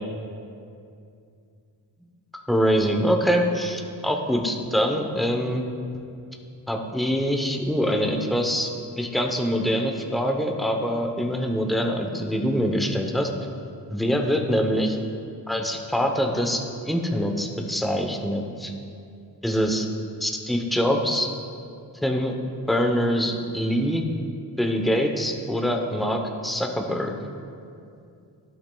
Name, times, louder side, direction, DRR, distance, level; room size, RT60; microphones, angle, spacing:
voice 1, 2.5-5.6 6.7-13.3 13.9-15.0 15.5-18.7 19.4-19.9 20.2-21.3 22.0-22.3 22.7-24.0 24.6-27.1, equal, ahead, 2 dB, 0.7 m, -24 dB
15.5 x 8.6 x 2.3 m, 2.5 s
wide cardioid pair, 125°, 41 cm